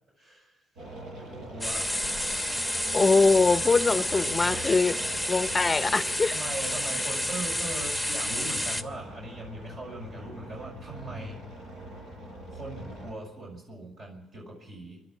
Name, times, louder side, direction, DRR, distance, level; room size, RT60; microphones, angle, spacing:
voice 1, 0.2-0.6 1.2-1.9 6.3-11.4 12.5-15.0, right 2 dB, 60° right, 6.6 m, -40 dB
sound 1, 0.8-13.1, right 1 dB, 85° right, 6.9 m, -42 dB
sound 2, 1.6-8.8, left 1 dB, 5° right, 1.1 m, -30 dB
voice 2, 2.9-5.0 5.3-6.4, left 4 dB, 25° left, 0.6 m, -22 dB
25.5 x 11.5 x 8.6 m
cardioid pair, 90°, 0 cm